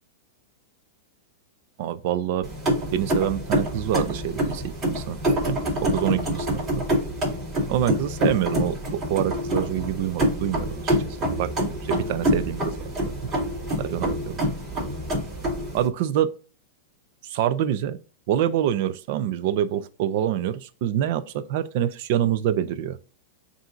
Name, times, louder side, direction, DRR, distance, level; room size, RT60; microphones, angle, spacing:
voice 1, 1.8-2.5 2.9-6.8 7.7-11.0 11.2-12.7 13.0-13.1 13.8-14.5 15.7-16.3 17.2-18.0 18.3-23.0, right 11 dB, 55° right, 0.5 m, -26 dB
sound 1, 2.4-15.9, equal, 25° right, 2.6 m, -26 dB
7.2 x 2.7 x 2.4 m
supercardioid pair, 140°, 0 cm